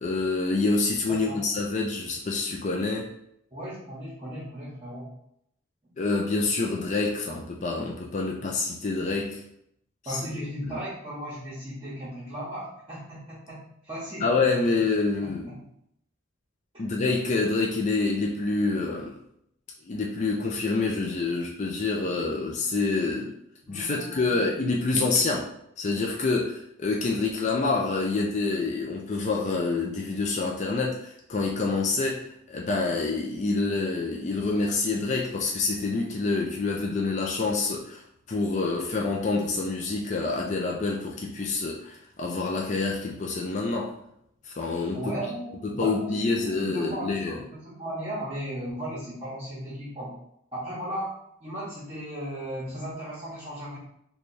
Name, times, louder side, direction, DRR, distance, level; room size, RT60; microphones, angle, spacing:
voice 1, 0.0-3.1 6.0-9.4 10.1-10.8 14.2-15.5 16.8-19.1 19.8-23.3 23.7-25.5 25.8-38.0 38.3-43.9 44.4-45.1 45.6-47.4, left 3 dB, 35° left, -1 dB, 0.4 m, -27 dB
voice 2, 1.1-1.4 3.5-5.1 10.0-14.3 15.2-15.6 16.7-16.8 23.7-24.6 44.9-50.1 50.5-53.8, right 1 dB, 25° right, -8 dB, 1.0 m, -36 dB
3.3 x 2.3 x 4.1 m, 0.74 s
head